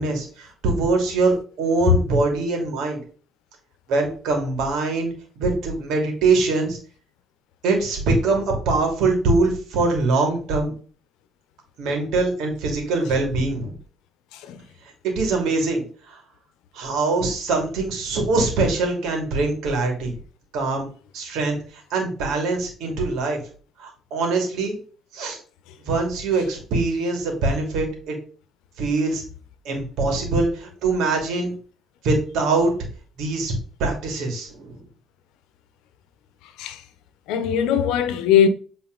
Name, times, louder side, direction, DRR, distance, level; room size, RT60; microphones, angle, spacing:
voice 1, 0.0-3.0 3.9-6.8 7.6-10.7 11.8-13.7 15.0-16.2 16.7-20.1 20.5-20.9 21.1-23.4 23.8-24.8 25.1-25.4 25.8-28.2 28.8-29.2 29.6-31.5 32.0-32.7 33.2-33.5 33.8-34.8, right 3 dB, 80° right, 2.5 m, -23 dB
voice 2, 14.3-14.6 36.6-36.8 37.3-38.5, left 9 dB, 90° left, 0.8 m, -20 dB
8.0 x 4.0 x 4.0 m
cardioid pair, 90°, 0 cm